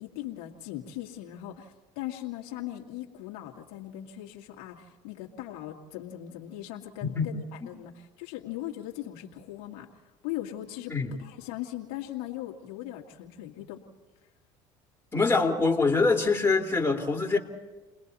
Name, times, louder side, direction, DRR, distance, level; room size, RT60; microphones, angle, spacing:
voice 1, 0.0-7.9 8.2-9.9 10.2-10.9 11.2-13.8, left 13 dB, 75° left, -1 dB, 2.2 m, -39 dB
voice 2, 15.1-17.4, left 4 dB, 15° left, 1 dB, 3.2 m, -24 dB
30.0 x 20.5 x 4.2 m, 1.2 s
supercardioid pair, 85°, 15 cm